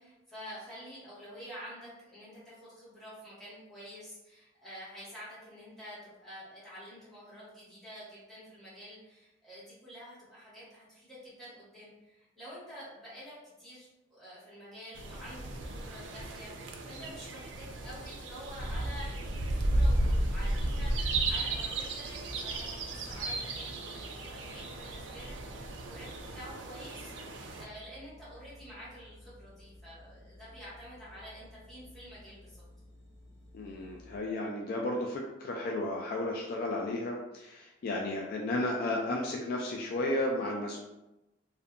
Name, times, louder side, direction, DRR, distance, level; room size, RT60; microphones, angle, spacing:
voice 1, 0.0-32.6, equal, ahead, -11 dB, 1.3 m, -48 dB
sound 1, 14.9-27.6, right 1 dB, 85° right, 0.4 m, -34 dB
sound 2, 18.7-34.2, left 1 dB, 85° left, 0.9 m, -54 dB
voice 2, 33.5-40.8, left 1 dB, 55° left, -1 dB, 0.3 m, -33 dB
2.6 x 2.1 x 2.4 m, 0.97 s
head